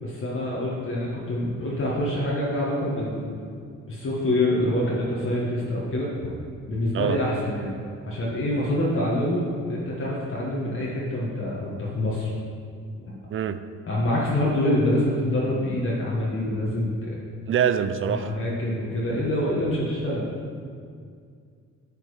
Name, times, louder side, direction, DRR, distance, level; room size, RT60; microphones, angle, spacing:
voice 1, 0.0-3.3 3.9-6.1 6.7-7.7 8.0-12.3 13.9-17.1 18.0-20.2, left 1 dB, 45° left, -6 dB, 1.6 m, -26 dB
voice 2, 13.3-13.6 17.5-18.3, right 8 dB, 45° right, 11 dB, 0.5 m, -24 dB
9.8 x 4.4 x 5.0 m, 2.2 s
cardioid pair, 90°, 30 cm